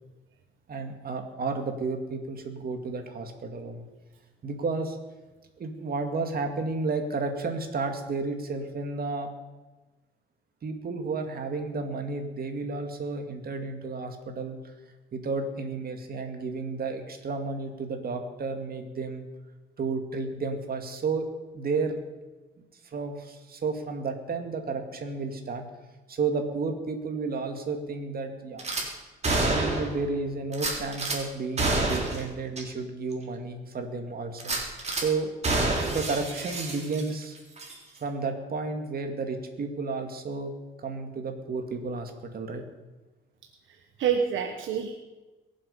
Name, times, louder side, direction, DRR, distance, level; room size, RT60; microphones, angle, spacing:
voice 1, 0.7-3.9 4.4-5.0 5.6-9.3 10.6-14.6 15.1-19.2 19.8-21.3 21.5-22.0 22.8-25.6 26.1-28.7 29.5-34.4 34.9-35.3 35.9-37.4 38.0-40.5 40.8-42.6, right 4 dB, 50° right, 5 dB, 2.4 m, -32 dB
Gunshot gunfire / Glass, 28.6-28.9 29.2-30.0 30.5-31.2 31.6-32.2 32.6-32.7 33.1-33.2 34.4-35.1 35.4-37.2 37.6-37.7, right 2 dB, 35° right, 3.7 m, -28 dB
voice 2, 43.7-44.9, right 7 dB, 75° right, 4 dB, 1.3 m, -28 dB
22.5 x 7.8 x 5.6 m, 1.2 s
cardioid pair, 90°, 20 cm